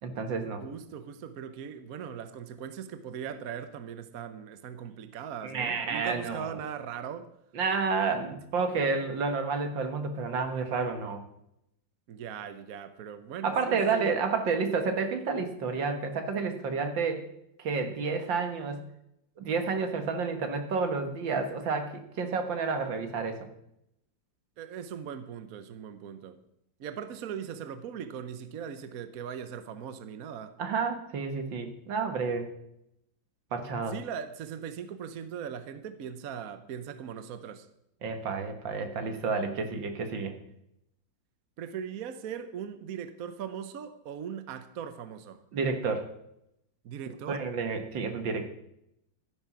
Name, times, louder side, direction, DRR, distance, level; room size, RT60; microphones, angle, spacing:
voice 1, 0.0-0.6 5.4-6.5 7.5-11.2 13.4-17.2 17.6-18.8 19.4-23.5 30.6-32.5 33.5-33.9 38.0-40.3 45.5-46.1 47.3-48.5, right 4 dB, 75° right, 2.1 m, -30 dB
voice 2, 0.6-7.3 12.1-14.1 24.6-26.4 26.8-30.5 33.9-37.7 41.6-45.4 46.8-47.5, right 8 dB, 55° right, 1.1 m, -39 dB
13.0 x 10.5 x 6.1 m
omnidirectional pair, 2.0 m